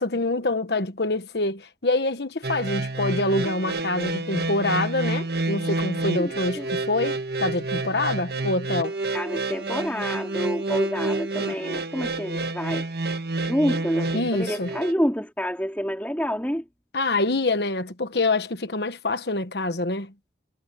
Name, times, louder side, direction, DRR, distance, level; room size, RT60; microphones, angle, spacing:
voice 1, 0.0-8.9 14.1-14.7 16.9-20.1, left 2 dB, 70° left, 1.3 m, -26 dB
sound 1, 2.4-14.9, right 2 dB, 60° right, 1.5 m, -29 dB
voice 2, 6.1-6.7 9.1-16.6, equal, 10° left, 3.2 m, -28 dB
head